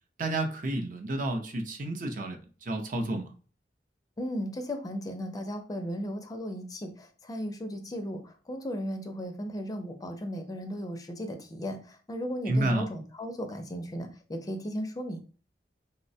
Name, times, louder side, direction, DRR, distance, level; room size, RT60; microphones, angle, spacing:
voice 1, 0.2-3.2 12.5-12.9, right 1 dB, 50° right, 0.5 m, -30 dB
voice 2, 4.2-15.2, equal, 20° left, 0.4 m, -36 dB
3.9 x 2.1 x 2.6 m
head